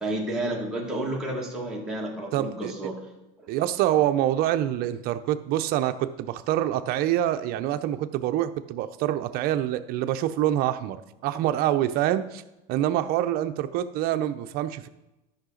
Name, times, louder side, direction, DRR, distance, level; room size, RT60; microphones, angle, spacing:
voice 1, 0.0-3.0, right 1 dB, 5° right, -4 dB, 1.9 m, -31 dB
voice 2, 2.3-2.7 3.5-12.4 12.7-14.9, right 12 dB, 50° right, 9 dB, 0.6 m, -26 dB
13.0 x 5.7 x 3.9 m, 0.98 s
supercardioid pair, 145°, 20 cm